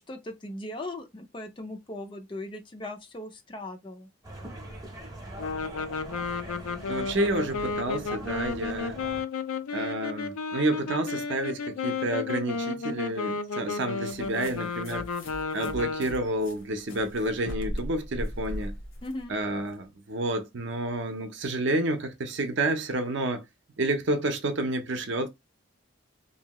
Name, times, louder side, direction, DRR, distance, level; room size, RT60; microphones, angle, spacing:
voice 1, 0.1-4.1 19.0-19.3, left 1 dB, 25° left, 0.4 m, -38 dB
sound 1, 4.2-9.2, right 1 dB, 15° right, 0.6 m, -42 dB
sound 2, 5.4-16.4, left 4 dB, 90° left, 0.4 m, -33 dB
voice 2, 6.9-9.0 9.7-15.1 15.5-18.7 19.3-23.4 23.8-25.3, right 1 dB, 55° right, 0.6 m, -29 dB
sound 3, 14.0-19.7, equal, 65° left, 0.8 m, -39 dB
2.7 x 2.2 x 2.9 m
head